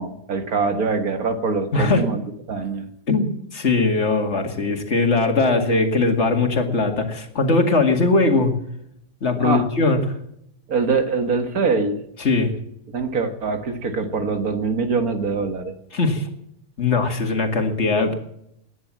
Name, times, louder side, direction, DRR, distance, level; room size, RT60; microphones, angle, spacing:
voice 1, 0.0-2.9 9.4-9.7 10.7-12.0 12.9-15.7, right 4 dB, 80° right, 6 dB, 2.2 m, -23 dB
voice 2, 1.7-2.0 3.1-8.5 9.2-10.0 12.2-12.5 15.9-16.3 16.8-18.1, left 3 dB, 50° left, 4 dB, 2.4 m, -20 dB
19.5 x 10.0 x 7.4 m, 0.74 s
omnidirectional pair, 1.5 m